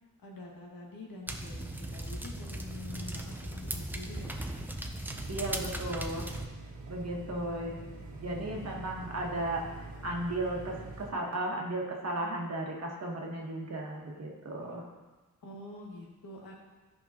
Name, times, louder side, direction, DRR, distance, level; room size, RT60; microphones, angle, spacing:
voice 1, 0.2-4.6 7.1-7.6 8.2-8.7 14.6-14.8 15.4-16.5, left 2 dB, 70° left, -2 dB, 1.8 m, -47 dB
sound 1, 1.3-6.5, right 1 dB, 5° right, 0.5 m, -38 dB
sound 2, 5.1-11.1, right 2 dB, 70° right, 1.3 m, -45 dB
voice 2, 5.3-6.3 6.9-7.7 8.2-14.8, right 1 dB, 45° right, -1 dB, 1.3 m, -35 dB
13.0 x 5.4 x 2.9 m, 1.2 s
wide cardioid pair, 165°, 36 cm